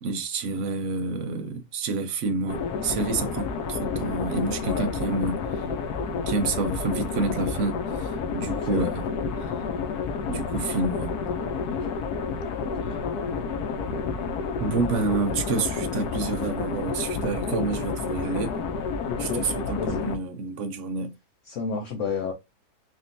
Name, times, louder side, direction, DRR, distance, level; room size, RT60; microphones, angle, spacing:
voice 1, 0.0-5.7 6.3-9.0 10.3-11.1 14.6-18.6 19.2-21.1, right 3 dB, 60° right, 0.9 m, -28 dB
sound 1, 2.5-20.2, left 5 dB, 85° left, 1.1 m, -30 dB
voice 2, 4.6-4.9 8.5-9.0 11.7-12.0 12.6-13.0 19.1-19.5 19.8-20.1 21.4-22.3, left 5 dB, 60° left, 0.9 m, -32 dB
3.6 x 2.4 x 2.6 m
omnidirectional pair, 1.6 m